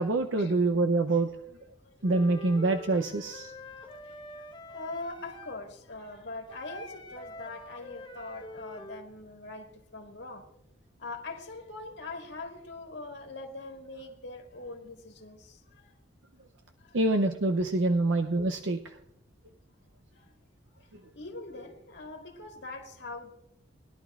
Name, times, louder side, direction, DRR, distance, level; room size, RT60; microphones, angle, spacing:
voice 1, 0.0-1.3 2.0-3.5 16.9-18.9, right 2 dB, 80° right, 5 dB, 0.7 m, -26 dB
Wind instrument woodwind instrument, 2.0-5.6 6.5-9.1, left 1 dB, 25° left, 1.2 m, -45 dB
voice 2, 3.7-10.4 11.0-15.9 16.8-17.0 17.9-18.0 20.2-20.3 21.1-23.3, left 3 dB, 65° left, 2 dB, 2.1 m, -42 dB
21.0 x 11.5 x 2.4 m, 0.79 s
head